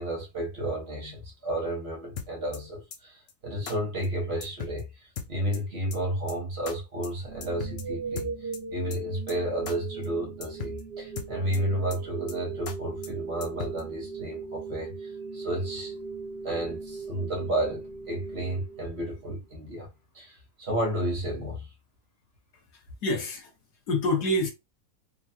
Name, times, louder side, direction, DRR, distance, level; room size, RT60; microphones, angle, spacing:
voice 1, 0.0-16.0 16.4-19.9 20.1-21.7, right 1 dB, 45° right, 1.4 m, -32 dB
sound 1, 2.2-2.6 2.9-3.0 3.3-3.4 3.7-3.8 4.0-4.1 4.4-4.8 5.2-5.6 5.9-6.0 6.3-6.4 6.7-6.8 7.0-7.1 7.4-7.8 8.2-8.6 8.9-9.0 9.3-9.4 9.7-9.8 10.0-10.1 10.4-10.8 11.2-11.6 11.9-12.0 12.3-12.4 12.7-12.8 13.0-13.1 13.4-13.8, left 6 dB, 55° left, 0.7 m, -38 dB
sound 2, 7.3-19.3, right 4 dB, 85° right, 1.5 m, -38 dB
voice 2, 22.7-23.5 23.9-24.5, left 1 dB, 80° left, 1.8 m, -27 dB
3.8 x 3.0 x 2.8 m
omnidirectional pair, 1.7 m